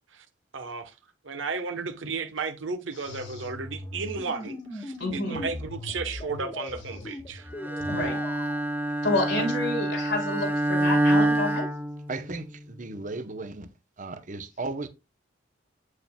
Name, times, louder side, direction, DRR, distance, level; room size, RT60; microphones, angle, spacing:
voice 1, 0.5-0.9 1.2-7.4, right 4 dB, 85° right, 1.0 m, -34 dB
voice 2, 3.0-3.5 5.0-5.4 7.9-8.2 9.0-11.7, left 2 dB, 75° left, 3.2 m, -29 dB
sound 1, 3.1-8.6, left 1 dB, 25° left, 1.3 m, -39 dB
Bowed string instrument, 7.6-12.6, right 1 dB, 10° right, 0.8 m, -26 dB
voice 3, 12.1-13.7 14.0-14.9, right 3 dB, 40° right, 0.8 m, -35 dB
8.7 x 6.5 x 2.2 m
head